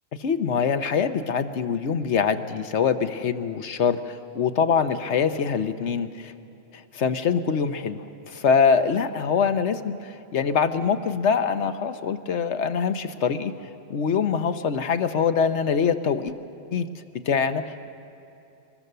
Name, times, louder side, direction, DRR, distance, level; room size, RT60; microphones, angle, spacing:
voice 1, 0.2-6.3 6.9-8.0 8.3-10.0 10.3-13.5 13.9-16.3 16.7-16.9 17.3-17.9, left 6 dB, 75° left, 9 dB, 1.2 m, -24 dB
24.0 x 20.5 x 6.8 m, 2.8 s
omnidirectional pair, 1.2 m